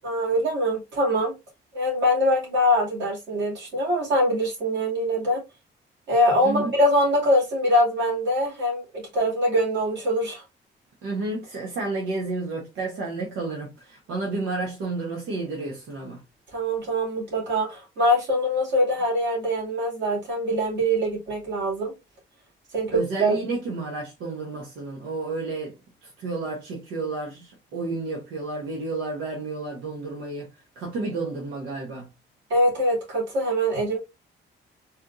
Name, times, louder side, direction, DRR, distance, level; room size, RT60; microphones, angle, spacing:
voice 1, 0.0-1.3 1.7-5.4 6.1-8.8 9.1-10.4 16.5-21.9 22.7-23.4 32.5-34.0, equal, 65° right, 2.3 m, -23 dB
voice 2, 11.0-16.2 22.9-25.7 26.0-30.5 30.8-32.1, right 3 dB, 90° right, 1.0 m, -31 dB
4.3 x 2.5 x 2.6 m
cardioid pair, 90°, 20 cm